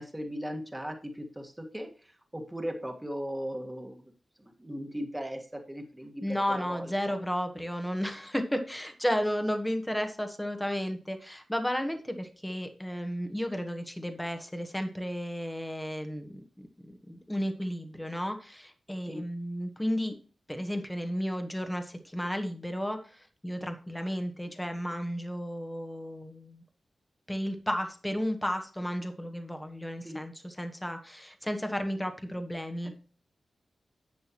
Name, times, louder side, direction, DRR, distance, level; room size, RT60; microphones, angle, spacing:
voice 1, 0.0-4.0 4.4-6.2 6.5-7.2 19.1-19.2 30.0-30.2 32.8-32.9, equal, 10° right, 3 dB, 1.7 m, -38 dB
voice 2, 6.2-20.2 20.5-26.6 27.3-32.9, equal, 5° left, 6 dB, 1.2 m, -33 dB
10.5 x 7.8 x 3.0 m, 0.37 s
wide cardioid pair, 105°, 0 cm